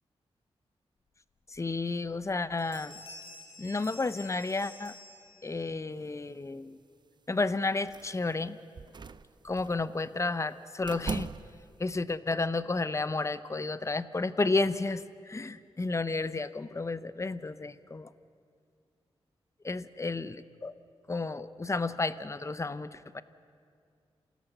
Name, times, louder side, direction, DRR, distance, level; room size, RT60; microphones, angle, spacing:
sound 1, 1.5-1.6 2.1-2.3 2.6-5.7, left 3 dB, 75° left, 4.3 m, -50 dB
voice 1, 1.5-3.0 3.6-4.9 5.4-6.8 7.3-8.6 9.4-11.3 11.8-18.1 19.6-20.7 21.1-23.2, left 3 dB, 30° left, 14 dB, 0.8 m, -32 dB
sound 2, 7.9-8.3 8.8-9.8 10.8-11.8, right 5 dB, 45° right, 0.6 m, -39 dB
28.0 x 16.5 x 6.8 m, 2.3 s
cardioid pair, 60°, 10 cm